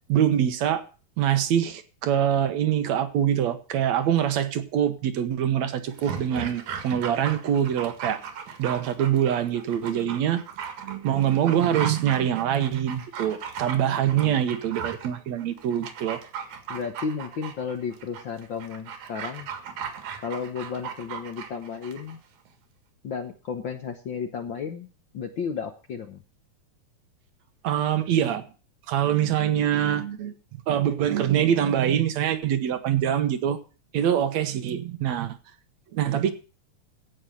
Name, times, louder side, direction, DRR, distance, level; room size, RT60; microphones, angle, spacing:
voice 1, 0.1-0.8 1.2-8.2 8.6-10.4 10.8-16.2 27.6-28.4 28.9-33.6 33.9-35.4 35.9-36.3, right 10 dB, 70° right, 2.3 m, -24 dB
Dog, 5.9-22.2 22.5-22.6, right 7 dB, 90° right, 3.2 m, -37 dB
voice 2, 13.9-14.4 16.7-19.5 20.2-22.2 23.0-24.9 25.1-26.2, left 6 dB, 60° left, 1.3 m, -33 dB
16.0 x 5.7 x 7.7 m
omnidirectional pair, 3.3 m